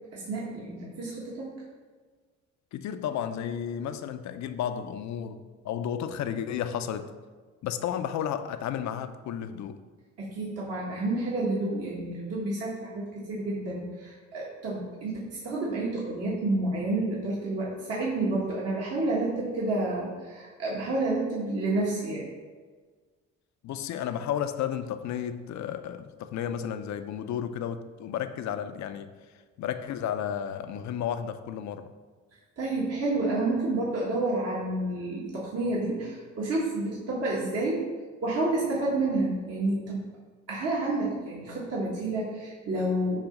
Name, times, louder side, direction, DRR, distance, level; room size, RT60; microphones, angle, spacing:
voice 1, 0.1-1.6 10.2-22.3 32.6-37.9 38.2-40.0 40.5-43.2, right 2 dB, 55° right, -5 dB, 1.4 m, -29 dB
voice 2, 2.7-7.1 7.6-9.8 23.6-29.1 29.6-31.9, left 9 dB, 65° left, 10 dB, 0.5 m, -32 dB
7.2 x 2.8 x 5.2 m, 1.5 s
cardioid pair, 90°, 30 cm